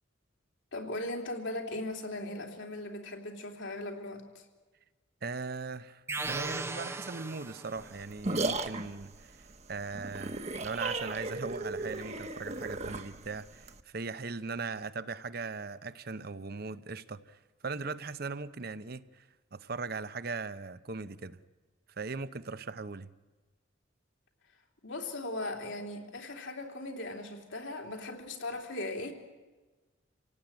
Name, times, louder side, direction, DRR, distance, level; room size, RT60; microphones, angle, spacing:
voice 1, 0.7-4.4 24.8-29.1, left 2 dB, 70° left, 3.3 m, -38 dB
voice 2, 5.2-21.4 22.0-23.1, right 4 dB, 50° right, 0.8 m, -39 dB
sound 1, 6.1-8.0, right 3 dB, 15° right, 0.7 m, -37 dB
sound 2, 7.8-13.8, right 2 dB, 35° right, 1.1 m, -36 dB
28.0 x 17.5 x 9.2 m
head